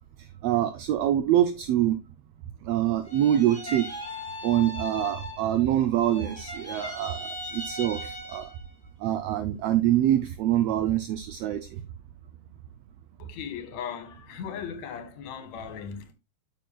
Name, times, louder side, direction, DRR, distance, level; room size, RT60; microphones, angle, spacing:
voice 1, 0.4-2.0 2.6-3.9 4.4-8.5 9.0-11.6, right 12 dB, 75° right, 1.5 m, -25 dB
sound 1, 3.0-5.7 5.9-8.7, left 1 dB, 15° left, 1.9 m, -38 dB
voice 2, 13.2-16.1, left 8 dB, 70° left, 2.7 m, -38 dB
8.5 x 7.8 x 2.2 m
omnidirectional pair, 3.3 m